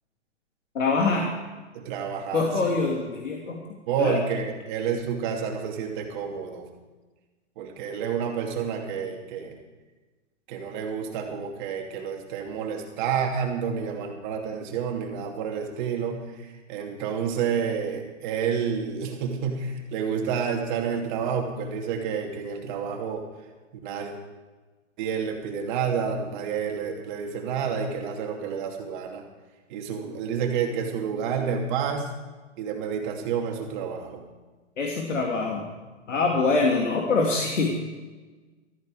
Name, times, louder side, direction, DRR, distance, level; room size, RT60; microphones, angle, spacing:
voice 1, 0.7-1.3 2.3-3.6 4.0-4.2 34.8-35.6 36.1-37.7, left 3 dB, 85° left, 0 dB, 2.6 m, -24 dB
voice 2, 1.7-2.7 3.9-6.7 7.6-9.6 10.5-23.2 23.8-24.1 25.0-29.2 29.7-32.1 32.6-34.2, right 7 dB, 40° right, 2 dB, 2.6 m, -29 dB
14.5 x 14.0 x 4.9 m, 1.2 s
hypercardioid pair, 140°, 37 cm